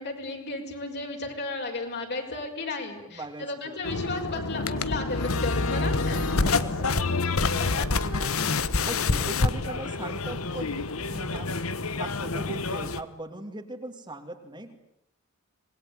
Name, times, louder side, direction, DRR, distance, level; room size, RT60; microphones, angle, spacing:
voice 1, 0.0-6.4 7.6-7.8, left 3 dB, 50° left, 2 dB, 6.0 m, -34 dB
voice 2, 3.0-3.8 6.1-7.6 8.0-11.5 11.8-14.8, right 1 dB, 20° right, 5 dB, 2.5 m, -40 dB
sound 1, 3.8-13.0, left 3 dB, 70° left, 1.3 m, -27 dB
26.5 x 21.0 x 9.8 m, 0.76 s
head